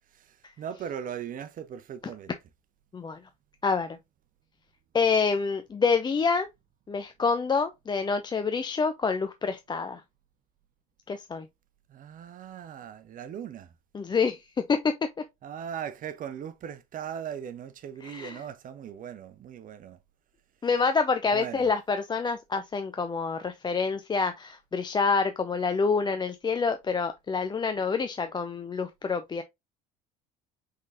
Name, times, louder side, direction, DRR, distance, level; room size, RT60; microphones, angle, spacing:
voice 1, 0.6-2.3 11.9-13.7 15.4-20.0 21.3-21.7, right 8 dB, 45° right, 0.8 m, -39 dB
voice 2, 3.6-4.0 4.9-6.5 6.9-10.0 11.1-11.5 13.9-14.4 14.7-15.0 18.0-18.4 20.6-29.4, left 5 dB, 20° left, 0.5 m, -27 dB
5.2 x 3.8 x 2.5 m
hypercardioid pair, 65°, 20 cm